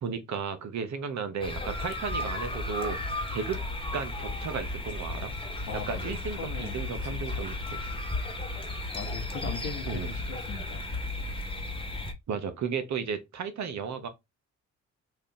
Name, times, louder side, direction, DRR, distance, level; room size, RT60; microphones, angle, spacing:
voice 1, 0.0-3.0 3.3-3.6 3.9-5.3 5.9-7.8 9.9-10.1 12.3-14.1, right 6 dB, 55° right, 0.9 m, -34 dB
sound 1, 1.4-12.1, left 2 dB, 15° left, 1.0 m, -34 dB
voice 2, 5.7-7.5 8.9-10.9, left 5 dB, 70° left, 1.2 m, -40 dB
3.2 x 2.5 x 3.7 m
hypercardioid pair, 50°, 34 cm